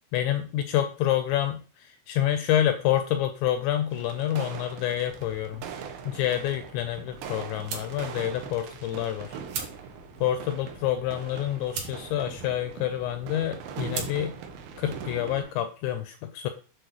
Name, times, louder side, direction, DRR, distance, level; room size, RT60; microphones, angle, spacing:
voice 1, 0.1-5.7 6.0-9.4 10.2-14.3 14.8-16.5, left 11 dB, 85° left, 8 dB, 2.6 m, -28 dB
sound 1, 3.9-15.5, right 7 dB, 80° right, 2.2 m, -41 dB
sound 2, 5.0-15.4, right 5 dB, 60° right, 2.8 m, -43 dB
8.2 x 6.7 x 3.1 m, 0.38 s
omnidirectional pair, 5.8 m